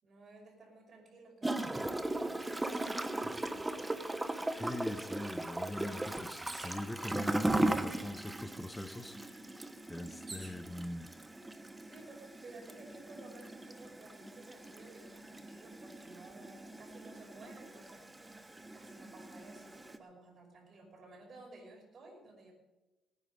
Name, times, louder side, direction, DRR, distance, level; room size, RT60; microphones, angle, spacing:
voice 1, 0.0-4.0 11.8-22.5, right 2 dB, 50° right, 1 dB, 5.7 m, -55 dB
Gurgling / Toilet flush, 1.4-20.0, right 1 dB, 15° right, 1.1 m, -38 dB
voice 2, 4.5-9.2 9.9-11.1, left 1 dB, 10° left, 10 dB, 1.0 m, -42 dB
sound 1, 6.5-6.9 7.8-7.9 8.2-10.6 11.4-11.9, right 3 dB, 30° right, 3.5 m, -50 dB
19.0 x 9.8 x 5.4 m, 1.1 s
cardioid pair, 90°, 0 cm